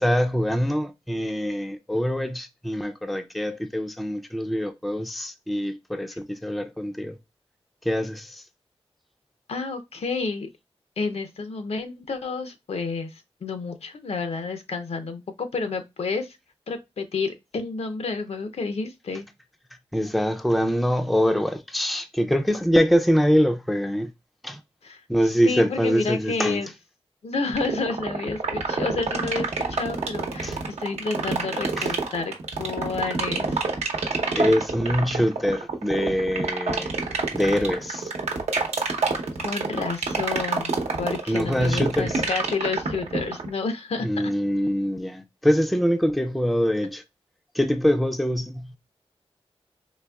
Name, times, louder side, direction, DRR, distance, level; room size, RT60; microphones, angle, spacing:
voice 1, 0.0-7.2 7.9-8.4 19.9-24.1 24.4-24.6 25.1-26.6 30.4-30.6 31.8-31.9 34.3-36.9 37.3-38.1 41.3-42.1 44.0-47.0 47.5-48.7, equal, ahead, 0.4 m, -24 dB
voice 2, 9.5-10.5 11.0-16.4 16.7-19.3 24.8-25.0 25.4-26.7 27.2-32.3 32.6-33.7 37.6-37.7 39.4-44.1, left 4 dB, 70° left, 0.6 m, -30 dB
sound 1, 27.5-43.5, right 4 dB, 85° right, 0.8 m, -26 dB
4.0 x 2.8 x 2.2 m
wide cardioid pair, 110°, 11 cm